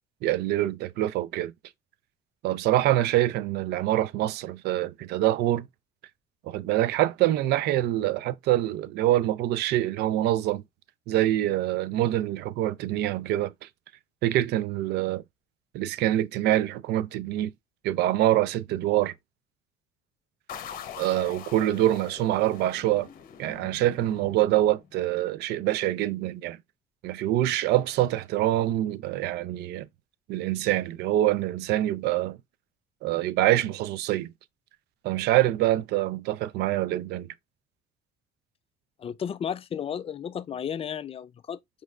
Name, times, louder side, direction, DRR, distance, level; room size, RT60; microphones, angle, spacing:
voice 1, 0.2-1.5 2.4-5.7 6.4-10.6 11.1-13.7 14.2-15.2 15.7-17.5 17.8-19.1 21.0-23.1 23.4-26.6 27.0-29.9 30.3-32.4 33.0-34.3 35.0-37.3, right 14 dB, 80° right, 0.4 m, -25 dB
sound 1, 20.5-25.0, left 8 dB, 55° left, 0.9 m, -43 dB
voice 2, 39.0-41.8, left 8 dB, 35° left, 0.4 m, -33 dB
5.2 x 3.1 x 2.3 m
cardioid pair, 110°, 17 cm